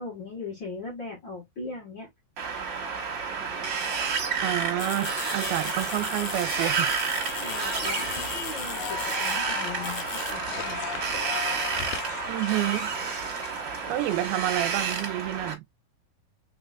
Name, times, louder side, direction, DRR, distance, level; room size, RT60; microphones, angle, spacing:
voice 1, 0.0-2.1 7.4-10.8, left 3 dB, 50° left, 1.4 m, -39 dB
Wind, 2.4-15.5, right 5 dB, 65° right, 1.1 m, -30 dB
voice 2, 4.4-6.9 7.2-7.4 12.3-12.9 13.9-15.6, right 14 dB, 85° right, 2.5 m, -29 dB
sound 1, 4.8-9.4 9.8-10.3, left 9 dB, 70° left, 2.2 m, -38 dB
sound 2, 7.3-14.9, left 13 dB, 85° left, 2.5 m, -38 dB
5.5 x 4.0 x 2.4 m
omnidirectional pair, 4.4 m